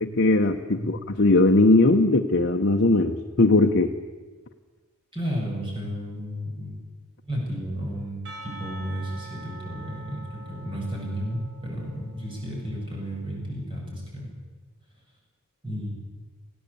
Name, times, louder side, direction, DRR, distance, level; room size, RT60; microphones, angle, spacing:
voice 1, 0.0-3.9, left 2 dB, 50° left, 3 dB, 1.0 m, -19 dB
voice 2, 5.1-6.7 7.2-14.3 15.6-15.9, equal, 25° right, -2 dB, 7.7 m, -32 dB
Percussion / Church bell, 8.2-12.8, right 1 dB, 60° right, 4.5 m, -45 dB
20.0 x 16.5 x 8.5 m, 1.3 s
head